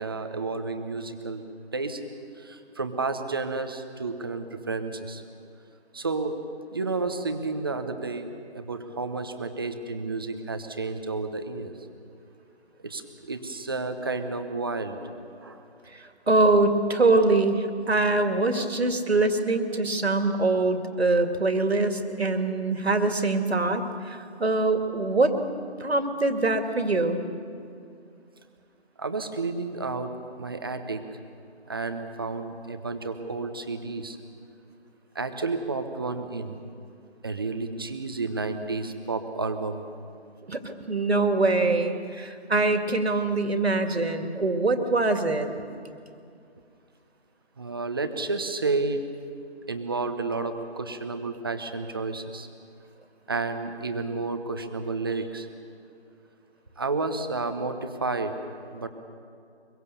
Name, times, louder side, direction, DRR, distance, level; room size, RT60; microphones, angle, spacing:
voice 1, 0.0-1.4 1.7-2.0 2.4-5.2 5.9-6.4 6.7-8.3 8.5-11.7 12.8-13.0 13.3-15.0 15.4-15.6 16.9-17.1 20.9-21.1 29.0-30.1 30.4-31.0 31.7-34.2 35.1-36.6 37.2-39.8 47.6-49.0 49.7-52.5 53.3-55.5 56.8-58.3 58.7-58.9, right 3 dB, 20° right, 7 dB, 0.9 m, -31 dB
voice 2, 16.3-23.8 24.4-25.3 25.8-27.2 40.5-45.5, right 2 dB, 65° right, 6 dB, 2.4 m, -23 dB
24.0 x 22.5 x 7.1 m, 2.4 s
figure-of-eight pair, 160°, 33 cm